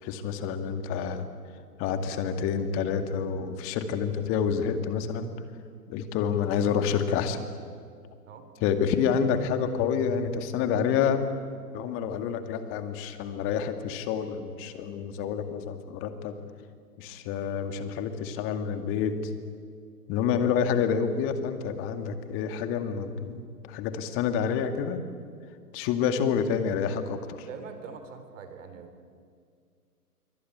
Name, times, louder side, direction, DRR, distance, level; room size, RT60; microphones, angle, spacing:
voice 1, 0.0-1.2 1.8-5.3 5.9-7.4 8.6-11.2 11.7-16.4 17.0-19.3 20.1-25.0 25.7-27.5, left 7 dB, 25° left, 8 dB, 2.1 m, -28 dB
voice 2, 27.4-29.2, right 5 dB, 50° right, 8 dB, 3.4 m, -43 dB
27.0 x 24.0 x 8.8 m, 2.1 s
figure-of-eight pair, 125°, 47 cm